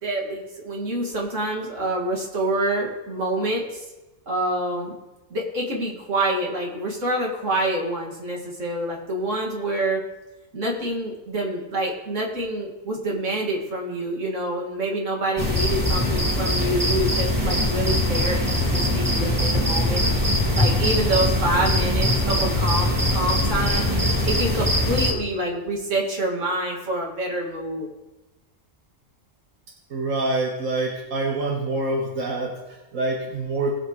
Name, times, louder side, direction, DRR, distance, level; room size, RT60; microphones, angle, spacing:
voice 1, 0.0-3.9 4.3-4.9 5.3-10.0 10.5-20.3 20.5-23.8 24.2-27.9, right 1 dB, 70° right, -1 dB, 2.5 m, -27 dB
sound 1, 15.4-25.1, left 1 dB, 15° right, 1.7 m, -22 dB
voice 2, 29.9-33.8, right 2 dB, 90° right, -2 dB, 1.6 m, -26 dB
19.5 x 7.5 x 3.2 m, 1.1 s
omnidirectional pair, 1.3 m